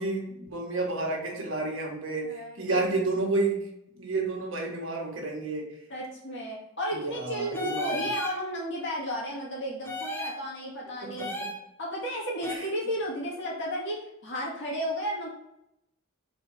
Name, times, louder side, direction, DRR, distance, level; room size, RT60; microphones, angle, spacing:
voice 1, 0.0-3.6 3.9-5.7 6.9-7.9 11.0-11.5 12.5-12.7, right 3 dB, 70° right, -1 dB, 1.7 m, -30 dB
voice 2, 2.2-2.9 5.9-11.3 11.8-15.3, equal, 60° left, -4 dB, 2.3 m, -33 dB
sound 1, 7.5-8.4 9.8-10.4 11.2-11.6 12.4-12.6, left 1 dB, 10° left, 0.9 m, -34 dB
4.4 x 4.3 x 5.6 m, 0.81 s
head